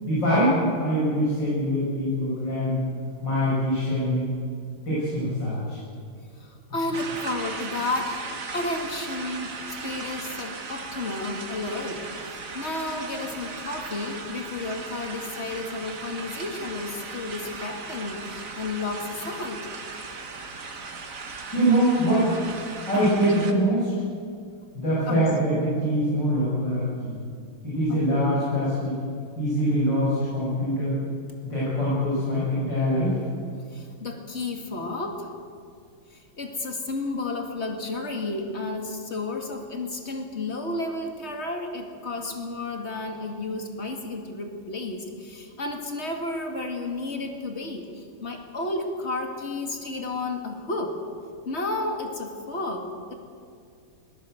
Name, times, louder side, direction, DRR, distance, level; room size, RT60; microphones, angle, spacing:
voice 1, 0.0-2.8 3.2-4.3 4.9-5.8 21.5-22.3 22.9-23.9 24.7-27.1 27.6-29.0 29.4-31.0 31.5-33.1, equal, 55° left, -9 dB, 8.6 m, -23 dB
voice 2, 6.4-19.7 22.9-23.3 25.1-25.3 27.9-28.0 33.7-35.3 36.1-51.0 51.5-53.1, left 2 dB, 30° left, 3 dB, 2.7 m, -32 dB
sound 1, 6.9-23.5, right 4 dB, 40° right, 1.9 m, -37 dB
21.0 x 19.0 x 8.1 m, 2.3 s
omnidirectional pair, 2.3 m